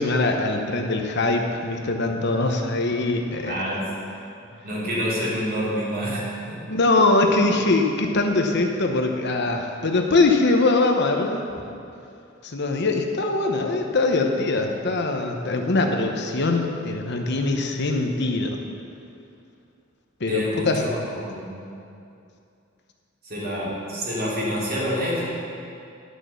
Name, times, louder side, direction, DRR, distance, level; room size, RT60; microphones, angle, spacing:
voice 1, 0.0-3.6 6.7-11.4 12.4-18.6 20.2-20.8, left 2 dB, 60° left, 3 dB, 0.9 m, -22 dB
voice 2, 3.4-3.9 4.6-6.7 11.5-11.6 20.3-21.7 23.2-25.2, equal, 50° right, -6 dB, 3.0 m, -27 dB
11.0 x 6.3 x 6.8 m, 2.6 s
head